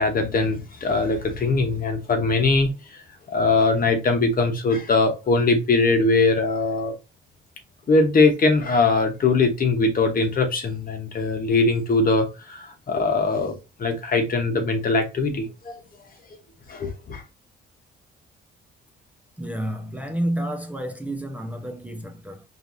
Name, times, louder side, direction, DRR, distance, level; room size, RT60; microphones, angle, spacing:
voice 1, 0.0-3.0 3.3-6.9 7.9-15.8 16.7-17.2, left 3 dB, 45° left, 1.2 m, -21 dB
voice 2, 19.4-22.4, right 1 dB, 5° right, 0.8 m, -30 dB
4.7 x 3.3 x 2.7 m
cardioid pair, 90°, 20 cm